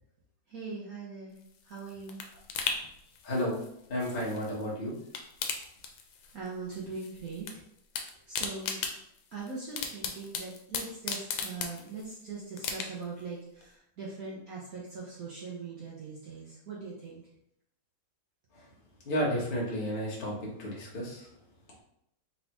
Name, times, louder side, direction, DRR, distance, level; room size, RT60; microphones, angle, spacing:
voice 1, 0.5-1.4 1.6-2.2 6.3-7.5 8.3-8.9 9.3-17.2, right 4 dB, 55° right, -5 dB, 1.2 m, -41 dB
sound 1, 1.4-4.7 5.0-6.5 6.7-7.5 7.8-12.1 12.6-13.2 13.6-13.7, left 6 dB, 85° left, 1.4 m, -37 dB
voice 2, 3.2-3.6 3.9-4.9 19.1-21.3, equal, 30° left, -5 dB, 1.1 m, -32 dB
4.1 x 3.7 x 2.9 m, 0.76 s
omnidirectional pair, 2.1 m